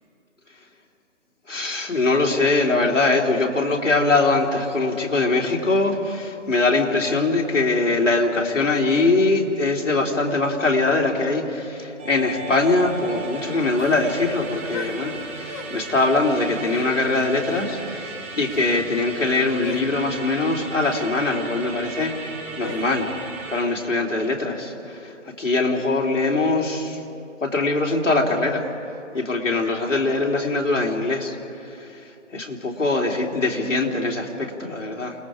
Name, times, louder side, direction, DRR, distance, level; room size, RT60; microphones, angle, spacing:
voice 1, 1.5-23.1 23.5-27.0 27.4-28.7 29.1-35.2, left 3 dB, 75° left, 0 dB, 3.1 m, -22 dB
Musical instrument, 12.0-23.6, right 4 dB, 10° right, 0.9 m, -36 dB
sound 1, 13.8-14.1 14.7-15.0 15.5-15.7 16.6-16.9 17.4-17.7 18.4-18.7 19.6-19.9 20.9-21.1 22.6-22.9, left 3 dB, 15° left, 1.1 m, -37 dB
28.0 x 20.0 x 4.9 m, 2.7 s
figure-of-eight pair, 160°, 37 cm